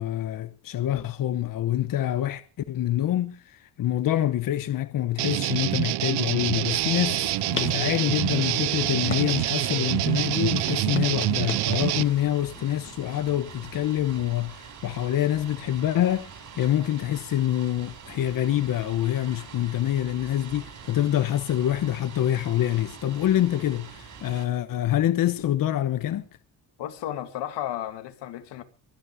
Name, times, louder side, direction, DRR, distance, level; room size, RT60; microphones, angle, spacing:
voice 1, 0.0-2.4 2.7-26.3, left 12 dB, 55° left, 1.1 m, -26 dB
sound 1, 5.2-12.0, right 16 dB, 75° right, 0.8 m, -26 dB
sound 2, 6.6-24.5, right 6 dB, 45° right, 5.5 m, -44 dB
sound 3, 6.8-14.4, left 5 dB, 30° left, 1.8 m, -42 dB
voice 2, 26.8-28.6, left 12 dB, 90° left, 2.5 m, -33 dB
23.5 x 9.8 x 5.1 m
cardioid pair, 130°, 40 cm